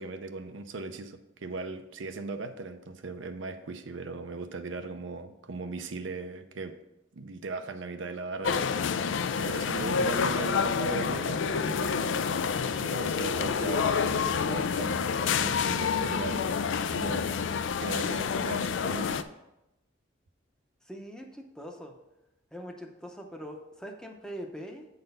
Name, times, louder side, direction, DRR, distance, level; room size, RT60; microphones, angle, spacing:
voice 1, 0.0-6.7 7.1-8.7 9.3-12.3 12.8-16.5 16.9-17.3 17.8-19.2, right 3 dB, 70° right, 8 dB, 0.6 m, -38 dB
sound 1, 8.4-19.2, left 6 dB, 65° left, 0.4 m, -28 dB
voice 2, 20.8-21.9 22.5-24.9, equal, 5° left, 2 dB, 0.7 m, -42 dB
7.8 x 4.1 x 5.4 m, 0.92 s
head